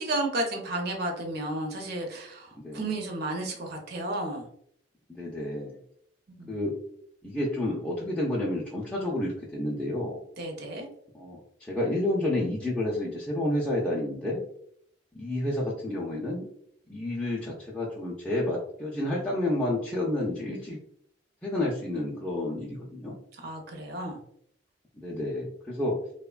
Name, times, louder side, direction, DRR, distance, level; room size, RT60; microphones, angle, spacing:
voice 1, 0.0-4.5 6.3-6.5 10.4-10.9 23.4-24.2, right 1 dB, 60° right, 2 dB, 0.6 m, -32 dB
voice 2, 5.1-5.8 6.5-6.8 7.2-10.2 11.1-14.4 15.1-16.5 16.9-20.8 21.4-23.2 25.0-26.0, left 1 dB, 5° left, -6 dB, 0.4 m, -30 dB
3.0 x 2.1 x 2.3 m, 0.67 s
head